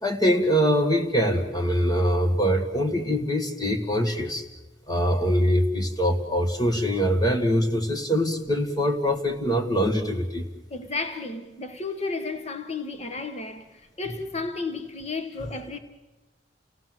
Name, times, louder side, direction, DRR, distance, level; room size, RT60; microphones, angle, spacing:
voice 1, 0.0-4.5 4.9-10.5, equal, 20° left, 2.0 m, -23 dB
voice 2, 10.7-15.8, left 3 dB, 35° left, 1.5 m, -33 dB
29.5 x 18.0 x 7.7 m
head